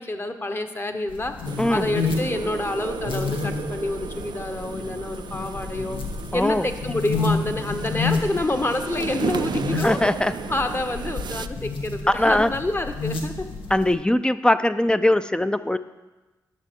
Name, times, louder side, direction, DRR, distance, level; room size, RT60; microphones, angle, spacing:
voice 1, 0.0-1.3 1.7-6.0 6.3-10.0 10.5-13.5, left 2 dB, 25° left, 7 dB, 1.0 m, -28 dB
sound 1, 1.1-13.9, left 4 dB, 75° left, 1.0 m, -30 dB
sound 2, 1.4-11.5, right 7 dB, 55° right, 0.4 m, -34 dB
voice 2, 6.3-6.7 9.8-10.3 12.1-12.5 13.7-15.8, left 1 dB, 10° left, 12 dB, 0.4 m, -21 dB
10.5 x 6.0 x 4.4 m, 1.2 s
supercardioid pair, 45°, 9 cm